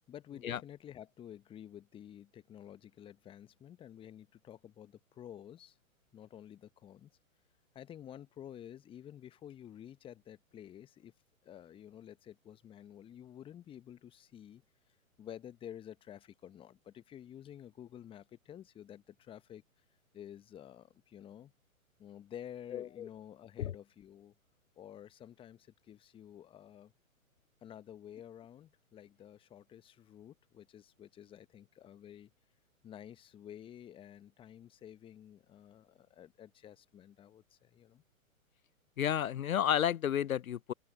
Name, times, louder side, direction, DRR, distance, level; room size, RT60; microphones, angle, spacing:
voice 1, 0.1-5.8 6.1-7.1 7.7-11.1 11.4-14.6 15.2-19.6 20.1-21.5 22.0-24.3 24.8-26.9 27.6-32.3 32.8-38.0, left 10 dB, 10° left, 1.0 m, -51 dB
voice 2, 22.7-23.1 23.6-23.7 39.0-40.7, left 10 dB, 80° left, 0.5 m, -31 dB
figure-of-eight pair, 120°, 42 cm